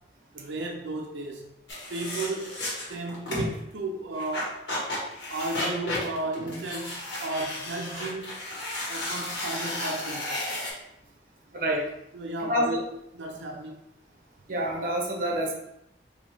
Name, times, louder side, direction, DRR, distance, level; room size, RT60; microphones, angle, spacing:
voice 1, 0.3-1.5 1.9-2.6 2.9-4.6 5.3-8.5 8.9-10.5 12.1-13.8, right 2 dB, 90° right, 1 dB, 0.5 m, -34 dB
sound 1, 1.7-3.6 4.2-10.7, left 1 dB, 85° left, 1.3 m, -33 dB
voice 2, 12.5-12.8 14.5-15.6, equal, 50° right, 0 dB, 0.7 m, -27 dB
4.0 x 2.7 x 3.0 m, 0.80 s
head